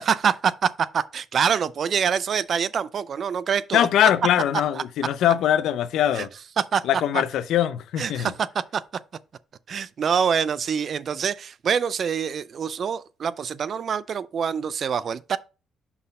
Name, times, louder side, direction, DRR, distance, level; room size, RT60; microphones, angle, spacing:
voice 1, 0.0-3.9 6.1-6.3 6.6-6.8 7.1-7.2 8.0-8.8 9.7-15.4, right 7 dB, 55° right, 0.4 m, -25 dB
voice 2, 3.7-6.3 6.8-8.3, left 11 dB, 80° left, 0.6 m, -22 dB
5.6 x 4.2 x 5.3 m
cardioid pair, 90°, 0 cm